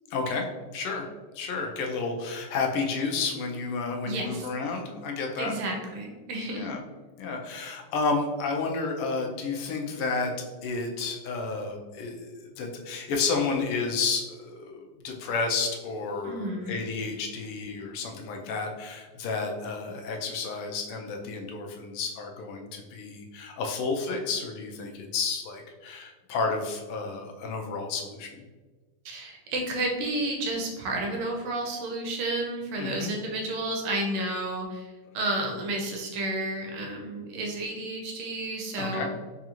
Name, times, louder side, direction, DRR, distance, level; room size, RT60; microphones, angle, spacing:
voice 1, 0.1-0.5 0.7-1.1 1.3-5.5 6.5-6.8 7.2-10.3 10.6-28.4 32.8-33.1 38.8-39.1, left 4 dB, 85° left, 2 dB, 1.5 m, -31 dB
voice 2, 4.0-4.5 5.4-6.7 16.2-16.7 29.0-39.1, right 2 dB, 90° right, 1 dB, 1.6 m, -31 dB
4.8 x 2.4 x 2.9 m, 1.3 s
omnidirectional pair, 2.4 m